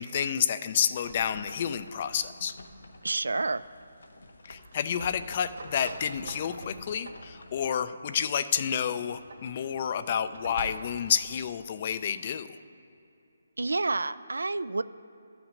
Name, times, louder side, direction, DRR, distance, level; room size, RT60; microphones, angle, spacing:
voice 1, 0.0-2.5 4.4-12.6, left 8 dB, 35° left, 12 dB, 0.4 m, -30 dB
sound 1, 0.9-7.7, left 2 dB, 85° left, 0.9 m, -49 dB
voice 2, 3.0-3.6 13.6-14.8, right 3 dB, 90° right, 16 dB, 0.3 m, -29 dB
sound 2, 4.5-7.3 8.9-11.1, right 2 dB, 65° right, 1.8 m, -45 dB
12.5 x 5.9 x 5.2 m, 2.8 s
hypercardioid pair, 160°, 0 cm